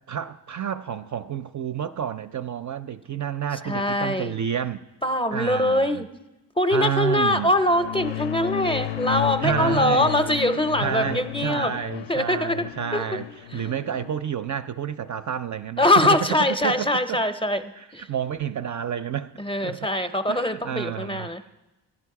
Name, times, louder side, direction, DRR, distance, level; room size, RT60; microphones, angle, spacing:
voice 1, 0.1-4.8 5.3-6.0 6.7-7.5 9.4-10.2 10.8-13.3 13.5-15.9 16.6-17.2 17.8-19.3 19.6-19.9 20.3-21.3, right 9 dB, 45° right, 0.4 m, -30 dB
voice 2, 3.6-4.4 5.0-6.1 6.6-11.7 12.1-12.6 12.9-13.0 13.5-13.6 15.8-17.6 17.9-18.1 19.4-21.4, left 1 dB, 15° left, 0.5 m, -23 dB
sound 1, 7.5-14.1, left 12 dB, 90° left, 0.6 m, -33 dB
11.5 x 10.5 x 4.7 m
cardioid pair, 70°, 43 cm